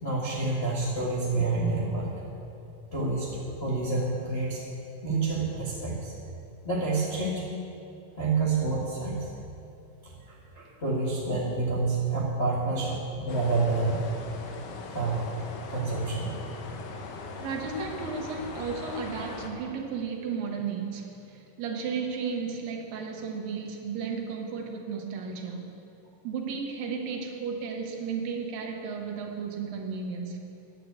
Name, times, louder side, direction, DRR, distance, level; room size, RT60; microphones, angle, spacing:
voice 1, 0.0-2.1 2.9-4.6 5.0-6.1 6.6-7.5 8.2-9.3 10.0-14.1 14.9-15.3 15.7-16.3, right 3 dB, 35° left, -7 dB, 1.0 m, -28 dB
sound 1, 13.3-19.5, left 4 dB, 70° left, 2.5 m, -40 dB
voice 2, 14.7-15.0 17.4-25.7 26.2-30.4, right 5 dB, 75° right, 2 dB, 2.7 m, -34 dB
10.0 x 9.3 x 8.1 m, 2.7 s
omnidirectional pair, 4.2 m